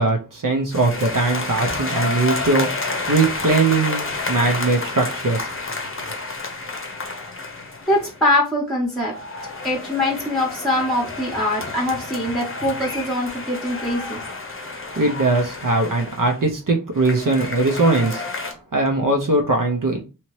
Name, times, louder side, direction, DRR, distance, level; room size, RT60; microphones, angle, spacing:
voice 1, 0.0-5.5 14.7-18.5 18.7-20.0, right 3 dB, 60° right, 0.7 m, -20 dB
sound 1, 0.7-8.2 8.9-16.4 16.9-18.5, left 3 dB, 35° left, 0.7 m, -30 dB
voice 2, 7.9-9.1 9.6-14.2, left 1 dB, ahead, 0.9 m, -22 dB
2.9 x 2.7 x 3.1 m
wide cardioid pair, 45°, 36 cm